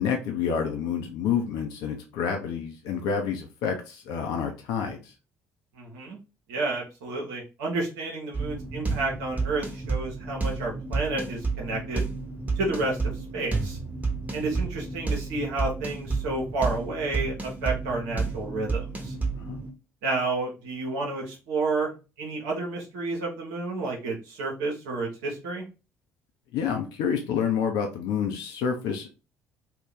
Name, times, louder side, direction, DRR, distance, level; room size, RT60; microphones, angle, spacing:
voice 1, 0.0-5.1 19.3-19.6 26.5-29.1, left 7 dB, 65° left, 3 dB, 0.5 m, -28 dB
voice 2, 5.8-6.2 6.5-12.0 12.6-13.8 14.3-19.1 20.0-21.9 22.2-25.6, right 3 dB, 70° right, -1 dB, 0.8 m, -30 dB
sound 1, 8.3-19.7, right 4 dB, 20° right, 1.0 m, -31 dB
2.7 x 2.2 x 3.6 m, 0.31 s
figure-of-eight pair, 50°, 8 cm